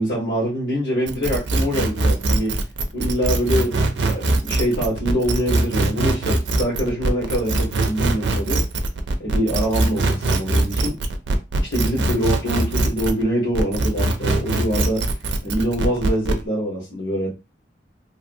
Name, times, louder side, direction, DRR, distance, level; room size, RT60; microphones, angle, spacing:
voice 1, 0.0-2.6 2.9-8.6 9.2-11.0 11.6-15.1 15.4-17.3, equal, 85° left, -6 dB, 1.2 m, -24 dB
sound 1, 1.1-13.2 13.5-16.4, right 2 dB, 85° right, 0.5 m, -22 dB
2.7 x 2.6 x 2.6 m, 0.27 s
head